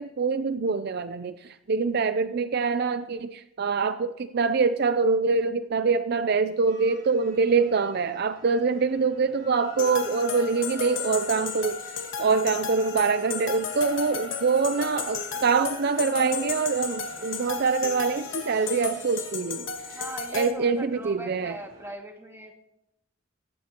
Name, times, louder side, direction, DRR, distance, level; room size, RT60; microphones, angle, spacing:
voice 1, 0.0-11.8 12.2-20.0 20.3-21.6, right 4 dB, 55° right, 11 dB, 0.5 m, -25 dB
sound 1, 6.7-21.9, equal, 75° right, 5.1 m, -45 dB
sound 2, 9.8-20.5, left 6 dB, 80° left, 1.7 m, -35 dB
voice 2, 19.9-22.5, right 1 dB, 15° right, 2 dB, 2.1 m, -39 dB
18.0 x 15.5 x 3.0 m, 0.85 s
head